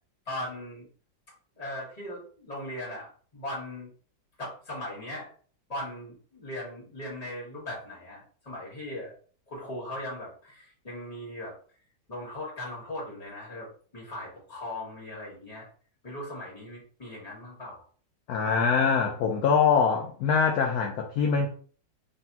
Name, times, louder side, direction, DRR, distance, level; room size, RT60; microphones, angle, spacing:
voice 1, 0.2-0.8 1.6-3.9 4.4-5.3 5.7-9.1 9.5-11.5 12.1-15.7 16.0-17.8, left 1 dB, 20° left, -5 dB, 1.7 m, -39 dB
voice 2, 18.3-21.5, left 6 dB, 70° left, 2 dB, 0.9 m, -23 dB
3.9 x 3.7 x 2.8 m, 0.44 s
omnidirectional pair, 2.1 m